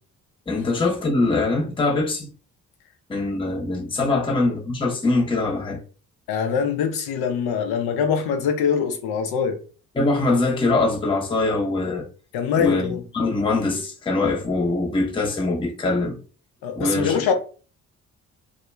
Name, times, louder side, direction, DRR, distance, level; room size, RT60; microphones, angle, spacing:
voice 1, 0.5-2.3 3.1-5.8 10.0-12.1 12.6-16.2 16.8-17.3, left 2 dB, 15° left, 0.7 m, -23 dB
voice 2, 6.3-9.6 12.3-13.0 16.6-17.3, left 7 dB, 65° left, 0.7 m, -23 dB
2.3 x 2.1 x 3.1 m
hypercardioid pair, 45°, 40 cm